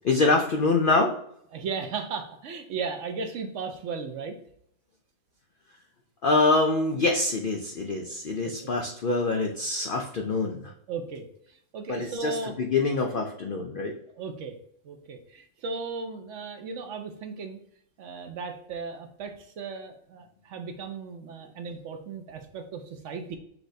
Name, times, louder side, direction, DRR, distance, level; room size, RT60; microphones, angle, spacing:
voice 1, 0.0-1.1 6.2-10.7 11.9-13.9, left 3 dB, 75° left, 3 dB, 0.4 m, -25 dB
voice 2, 1.5-4.4 8.0-8.1 8.4-8.5 10.9-12.5 14.2-14.6 14.8-17.6 18.0-23.4, right 5 dB, 65° right, 6 dB, 0.9 m, -36 dB
6.0 x 3.2 x 2.6 m, 0.69 s
omnidirectional pair, 1.5 m